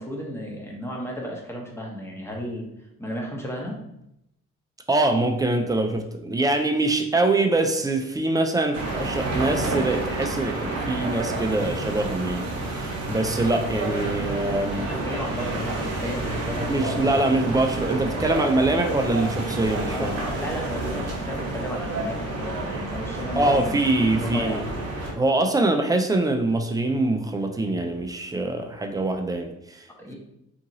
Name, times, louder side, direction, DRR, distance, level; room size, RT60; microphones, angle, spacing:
voice 1, 0.0-2.6 3.0-3.8 14.7-17.5 19.9-23.8 24.1-24.6 30.0-30.1, equal, 10° left, -1 dB, 0.8 m, -33 dB
voice 2, 4.9-14.9 16.7-20.2 23.4-24.6 25.1-29.8, right 2 dB, 15° right, 4 dB, 0.3 m, -24 dB
sound 1, 8.7-25.1, right 2 dB, 55° right, 0.8 m, -29 dB
2.8 x 2.6 x 2.6 m, 0.80 s
cardioid pair, 90°, 30 cm